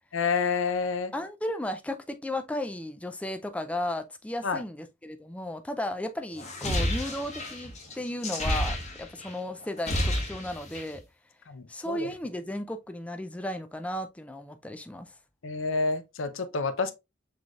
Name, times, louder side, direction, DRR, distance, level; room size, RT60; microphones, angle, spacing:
voice 1, 0.1-1.1 4.4-4.6 11.5-12.1 15.4-16.9, left 4 dB, 85° left, 0.6 m, -28 dB
voice 2, 1.1-11.0 11.7-15.1, left 1 dB, 5° left, 0.3 m, -34 dB
sound 1, 6.4-9.3 9.6-11.0, left 1 dB, 35° left, 1.3 m, -30 dB
6.0 x 3.3 x 2.4 m
head